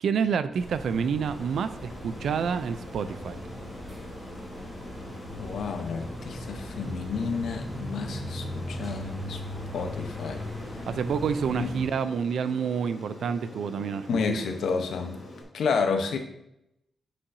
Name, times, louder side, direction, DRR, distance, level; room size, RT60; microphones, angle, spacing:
voice 1, 0.0-3.4 10.9-14.4, right 6 dB, 75° right, 12 dB, 0.4 m, -28 dB
sound 1, 0.5-11.9, equal, 10° right, 2.2 m, -38 dB
Aircraft, 1.2-15.4, left 2 dB, 45° left, 1.5 m, -45 dB
voice 2, 5.4-9.4 9.7-10.4 11.6-11.7 14.1-15.2 15.5-16.2, left 5 dB, 80° left, 5 dB, 0.7 m, -30 dB
8.3 x 5.6 x 2.6 m, 0.82 s
wide cardioid pair, 165°, 0 cm